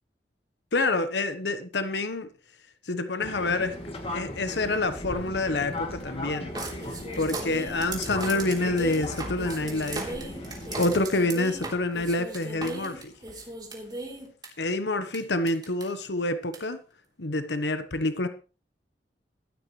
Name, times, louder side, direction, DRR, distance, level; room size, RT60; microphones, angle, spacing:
voice 1, 0.7-2.3 2.8-3.8 4.1-6.5 6.8-13.1 14.6-16.8 17.2-18.3, left 2 dB, 80° left, 1.1 m, -28 dB
Fixed-wing aircraft airplane, 3.2-11.1, left 1 dB, 35° left, 2.5 m, -37 dB
sound 1, 6.5-14.5 15.1-15.2 15.5-15.8 16.5-16.6, right 2 dB, 25° right, 3.3 m, -37 dB
15.5 x 12.0 x 3.1 m
head